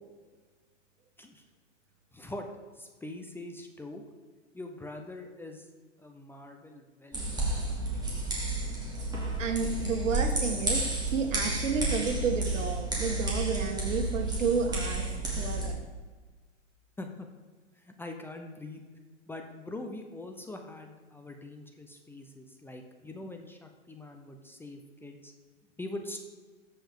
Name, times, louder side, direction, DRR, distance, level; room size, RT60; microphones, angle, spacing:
voice 1, 2.1-2.5 2.7-4.0 4.5-5.7 6.0-8.1 17.0-17.3 17.7-18.8 19.3-25.3 25.8-26.2, left 2 dB, 5° left, 3 dB, 0.6 m, -43 dB
sound 1, 7.1-15.7, right 2 dB, 10° right, 2.6 m, -31 dB
voice 2, 9.4-15.1 15.3-15.8, right 5 dB, 80° right, 5 dB, 1.6 m, -31 dB
15.0 x 5.6 x 3.7 m, 1.4 s
hypercardioid pair, 125°, 37 cm